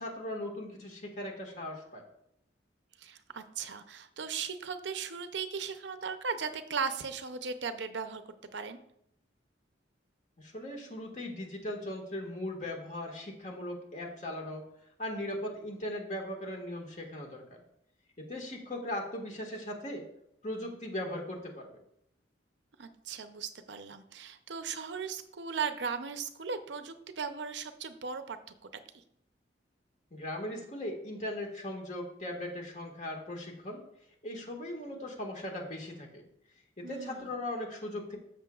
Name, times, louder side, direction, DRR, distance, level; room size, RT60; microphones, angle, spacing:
voice 1, 0.0-2.0 10.4-14.6 15.0-17.4 18.2-20.0 20.4-21.7 30.1-33.8 34.2-36.2 36.8-38.2, left 1 dB, 40° left, 1 dB, 1.7 m, -38 dB
voice 2, 3.0-8.2 8.5-8.8 22.8-28.4 36.8-37.4, right 6 dB, 75° right, 9 dB, 0.7 m, -37 dB
13.5 x 6.4 x 2.4 m, 0.76 s
head